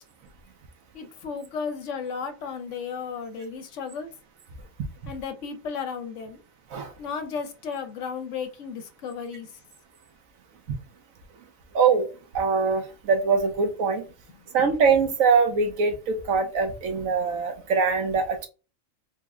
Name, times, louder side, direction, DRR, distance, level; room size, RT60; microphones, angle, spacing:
voice 1, 0.9-4.1 5.1-6.4 7.0-9.5 14.3-14.4, left 6 dB, 70° left, 8 dB, 0.9 m, -34 dB
voice 2, 12.3-14.0 14.5-18.5, right 5 dB, 80° right, 6 dB, 1.2 m, -23 dB
3.5 x 2.1 x 3.5 m, 0.31 s
omnidirectional pair, 1.4 m